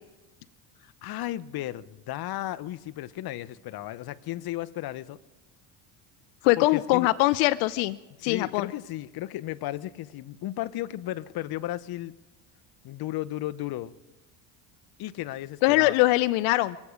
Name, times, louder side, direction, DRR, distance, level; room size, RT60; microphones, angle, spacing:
voice 1, 0.8-5.2 6.6-7.1 8.3-12.1 12.8-13.9 15.0-15.9, left 14 dB, 45° left, 14 dB, 0.8 m, -34 dB
voice 2, 6.4-8.7 15.6-16.8, left 19 dB, 75° left, 15 dB, 0.6 m, -22 dB
25.0 x 8.4 x 5.0 m, 1.1 s
supercardioid pair, 95°, 50 cm